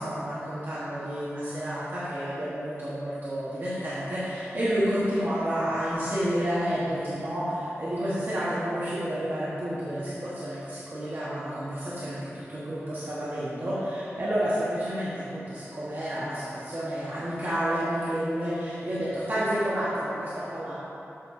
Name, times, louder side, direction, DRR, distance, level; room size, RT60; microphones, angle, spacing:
voice 1, 0.0-20.7, equal, 50° right, -11 dB, 1.4 m, -30 dB
7.7 x 4.3 x 4.2 m, 2.8 s
wide cardioid pair, 75°, 5 cm